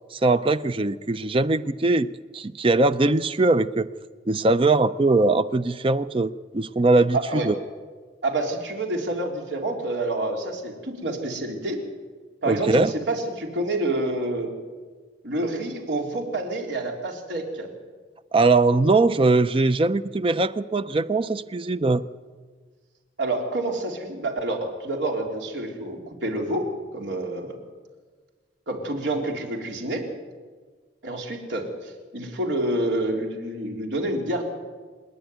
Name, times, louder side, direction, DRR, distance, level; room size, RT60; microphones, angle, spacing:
voice 1, 0.1-2.1 2.3-3.9 4.3-7.5 12.5-12.9 18.3-22.0, right 3 dB, 30° right, 13 dB, 0.5 m, -21 dB
voice 2, 7.1-7.5 8.2-11.8 12.4-14.5 15.2-17.7 23.2-27.6 28.7-30.1 31.0-34.4, right 2 dB, 80° right, 1 dB, 3.7 m, -28 dB
26.5 x 10.5 x 9.3 m, 1.5 s
head